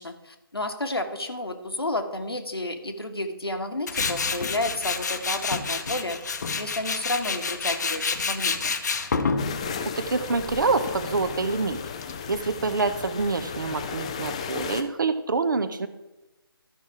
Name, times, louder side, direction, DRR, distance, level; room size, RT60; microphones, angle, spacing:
voice 1, 0.0-6.2 6.6-8.7, left 2 dB, 80° left, 5 dB, 1.4 m, -31 dB
Tools, 3.9-12.7, left 5 dB, 45° left, 0.8 m, -29 dB
sound 1, 9.4-14.8, left 6 dB, 15° left, 0.3 m, -35 dB
voice 2, 9.8-11.8 12.3-15.9, right 4 dB, 55° right, 11 dB, 0.9 m, -26 dB
12.5 x 5.8 x 4.8 m, 1.0 s
figure-of-eight pair, 150°, 13 cm